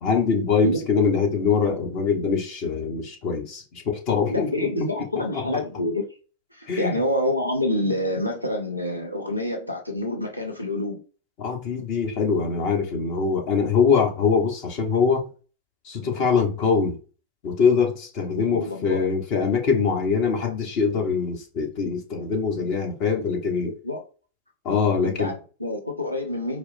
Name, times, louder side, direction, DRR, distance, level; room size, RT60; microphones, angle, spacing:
voice 1, 0.0-4.8 6.7-7.0 11.4-15.3 15.8-17.0 17.4-23.7 24.6-25.3, left 5 dB, 45° left, 1.0 m, -23 dB
voice 2, 4.3-6.0 6.5-11.0 18.4-19.1 22.6-22.7 23.8-24.0 25.0-26.6, left 1 dB, 85° left, 0.6 m, -27 dB
4.6 x 2.1 x 2.6 m
figure-of-eight pair, 90°, 0 cm